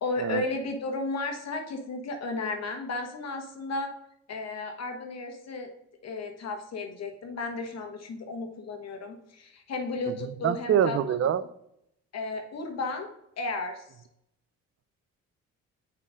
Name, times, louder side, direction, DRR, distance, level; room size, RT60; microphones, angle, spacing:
voice 1, 0.0-3.9 4.3-5.7 6.0-11.0 12.1-13.1 13.4-13.9, left 3 dB, 60° left, 4 dB, 1.4 m, -33 dB
voice 2, 10.4-11.4, right 9 dB, 50° right, 15 dB, 0.5 m, -24 dB
5.5 x 4.4 x 6.3 m, 0.78 s
cardioid pair, 90°, 30 cm